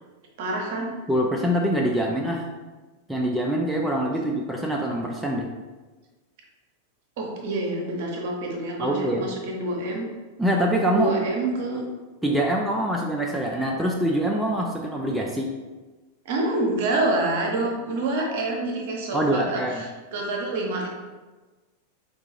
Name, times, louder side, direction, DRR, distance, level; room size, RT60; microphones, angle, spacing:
voice 1, 0.4-0.9 4.1-4.2 7.2-10.0 10.9-11.8 16.2-20.9, right 2 dB, 50° right, 0 dB, 0.8 m, -27 dB
voice 2, 1.1-2.5 3.1-5.5 8.8-9.3 10.4-11.1 12.2-15.5 19.1-19.8, right 1 dB, 5° right, -1 dB, 0.4 m, -24 dB
4.4 x 2.4 x 2.9 m, 1.2 s
figure-of-eight pair, 90°, 0 cm